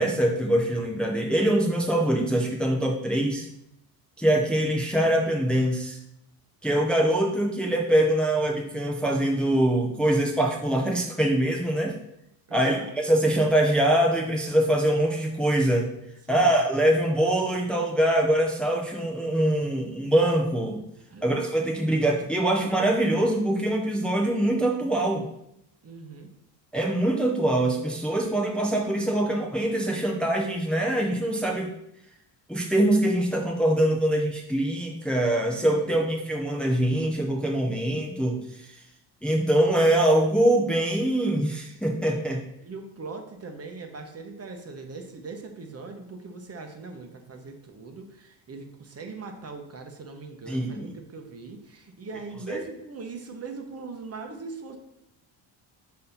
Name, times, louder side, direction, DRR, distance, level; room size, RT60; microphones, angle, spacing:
voice 1, 0.0-3.5 4.2-6.0 6.6-12.0 12.5-15.9 16.3-20.8 21.2-25.3 26.7-31.7 32.5-38.4 39.2-42.4 50.5-50.9 52.5-52.6, right 1 dB, ahead, 0 dB, 0.8 m, -23 dB
voice 2, 12.5-12.9 16.2-16.7 21.1-21.3 25.8-26.3 35.8-35.9 42.6-54.8, right 4 dB, 35° right, 4 dB, 1.0 m, -40 dB
4.2 x 4.2 x 5.5 m, 0.79 s
cardioid pair, 90°, 42 cm